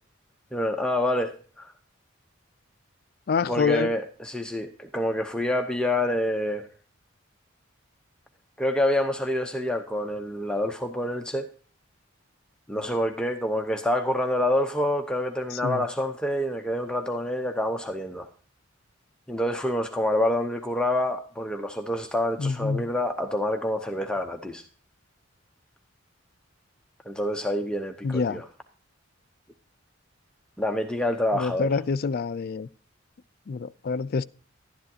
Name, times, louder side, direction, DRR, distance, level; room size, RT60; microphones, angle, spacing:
voice 1, 0.5-1.7 3.5-6.7 8.6-11.5 12.7-18.3 19.3-24.6 27.0-28.4 30.6-31.7, left 1 dB, 5° left, 0.6 m, -27 dB
voice 2, 3.3-3.9 12.8-12.9 15.5-15.8 22.4-22.9 28.0-28.4 31.3-32.7 33.5-34.2, left 5 dB, 50° left, 0.4 m, -27 dB
12.0 x 10.5 x 2.7 m
head